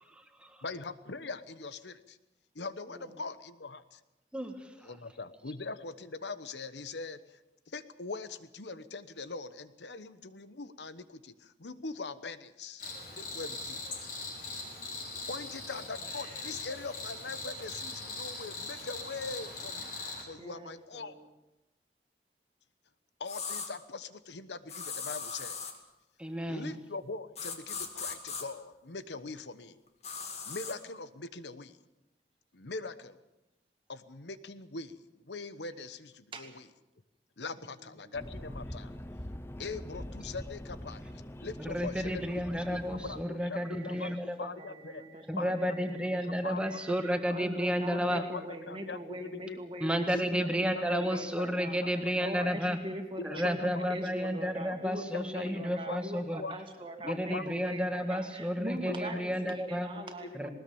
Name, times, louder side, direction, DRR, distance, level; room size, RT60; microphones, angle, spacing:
voice 1, 0.1-0.6 4.3-4.9 26.2-26.7 41.6-44.5 45.3-48.2 49.8-52.8 53.2-56.4 57.0-59.9 60.3-60.5, equal, 5° right, 5 dB, 1.7 m, -32 dB
voice 2, 0.6-2.2 2.5-4.0 4.8-7.4 7.7-12.9 13.1-13.8 15.3-21.1 23.2-25.7 26.5-29.8 30.4-31.8 32.5-33.2 33.9-36.6 37.4-38.9 39.6-41.0 41.4-42.5 42.7-44.9 45.4-47.5 47.9-48.4 48.7-49.6 50.1-51.2 51.8-52.5 53.3-53.9 54.2-54.4 54.9-55.5 55.9-56.6 57.1-57.7 58.9-59.2 59.7-59.8 60.2-60.4, left 3 dB, 80° left, 13 dB, 1.1 m, -42 dB
Cricket, 12.8-20.2, left 3 dB, 55° left, 6.1 m, -41 dB
voice 3, 20.4-21.3 36.3-36.5 37.7-38.1 43.0-45.2 45.6-46.2 46.4-60.5, right 1 dB, 30° right, 3 dB, 2.3 m, -43 dB
sound 1, 23.3-23.7 24.7-25.8 27.4-28.4 30.0-30.8, left 5 dB, 35° left, 2.4 m, -38 dB
sound 2, 38.1-43.2, left 1 dB, 15° left, 0.7 m, -43 dB
20.0 x 19.5 x 7.1 m, 0.96 s
head